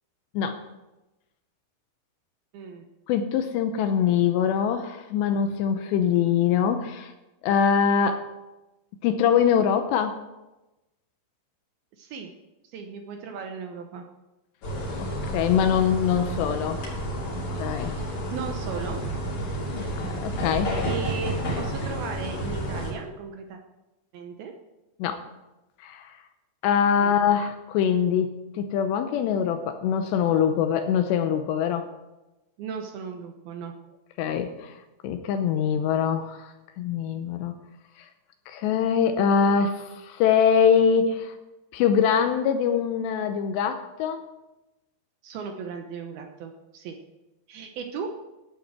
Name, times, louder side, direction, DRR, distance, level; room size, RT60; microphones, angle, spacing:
voice 1, 2.5-2.8 12.0-12.3 12.6-14.0 18.0-19.0 20.3-20.5 20.8-23.6 24.1-24.5 27.0-27.1 32.6-33.7 45.2-47.0 47.5-48.1, right 6 dB, 70° right, 4 dB, 2.5 m, -36 dB
voice 2, 3.1-7.1 7.4-8.3 9.0-10.2 15.3-16.8 17.4-17.9 19.8-20.8 25.0-25.2 25.8-26.2 26.6-31.9 34.2-34.8 35.0-37.5 38.0-38.1 38.5-41.3 41.7-44.3, left 7 dB, 80° left, 8 dB, 2.9 m, -23 dB
sound 1, 14.6-22.9, equal, 45° left, 3.9 m, -30 dB
11.5 x 8.3 x 7.4 m, 1.0 s
omnidirectional pair, 5.1 m